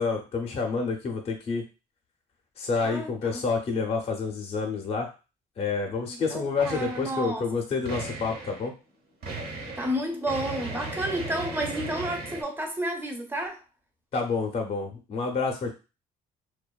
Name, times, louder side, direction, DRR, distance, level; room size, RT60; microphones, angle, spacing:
voice 1, 0.0-1.6 2.6-5.1 5.6-8.7 14.1-15.7, left 4 dB, 35° left, 2 dB, 0.5 m, -28 dB
voice 2, 2.8-3.5 6.0-7.5 9.8-13.6, right 1 dB, 15° right, 3 dB, 0.5 m, -31 dB
sound 1, 6.6-7.2 7.8-8.7 9.2-12.4, right 3 dB, 65° right, 0.9 m, -37 dB
2.4 x 2.2 x 2.2 m, 0.31 s
cardioid pair, 110°, 17 cm